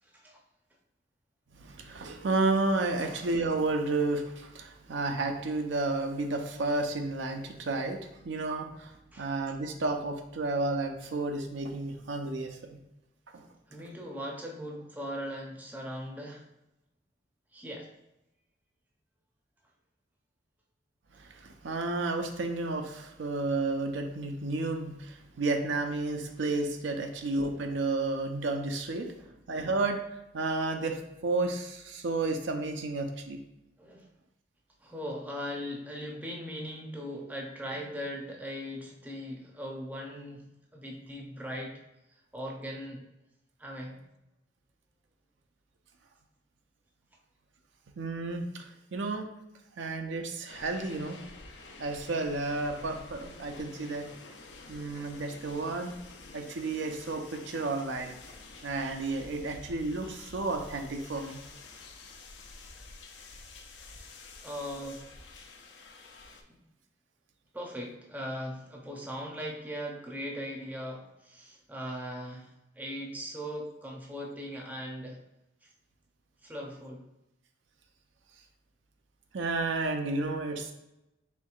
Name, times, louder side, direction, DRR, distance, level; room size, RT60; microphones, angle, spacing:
voice 1, 0.0-0.4 3.0-3.1 9.1-9.3 13.7-16.5 17.5-17.9 27.1-27.2 29.2-29.3 33.8-34.1 34.8-41.8 42.1-43.1 43.6-44.0 53.6-53.8 64.4-65.0 66.5-66.6 67.5-75.2 75.6-75.7 76.4-77.0, equal, 10° right, -1 dB, 0.6 m, -39 dB
voice 2, 1.5-12.8 13.3-13.5 21.1-29.1 29.5-30.0 30.3-33.4 48.0-49.3 49.8-51.2 51.8-54.1 54.7-55.9 56.3-58.1 58.6-61.4 79.3-80.7, right 3 dB, 80° right, 4 dB, 0.5 m, -32 dB
sound 1, 50.5-66.4, left 3 dB, 70° left, 0.5 m, -49 dB
4.5 x 3.6 x 2.4 m, 0.92 s
head